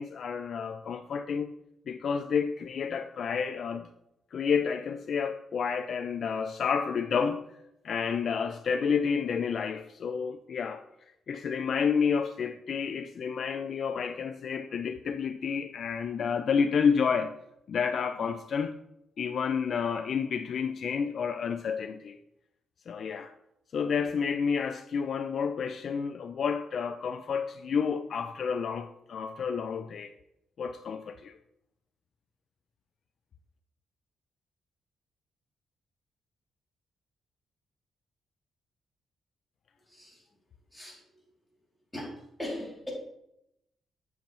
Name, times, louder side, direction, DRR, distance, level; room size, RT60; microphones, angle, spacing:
voice 1, 0.0-1.5 1.9-3.9 4.3-7.4 7.8-10.8 11.3-17.4 17.7-18.8 19.2-22.2 22.9-23.3 23.7-30.1 30.6-31.4, left 6 dB, 55° left, 0.4 m, -30 dB
voice 2, 39.9-40.2 40.7-41.0 41.9-42.9, left 1 dB, 5° left, 2.6 m, -39 dB
7.4 x 6.9 x 3.0 m
cardioid pair, 120°, 0 cm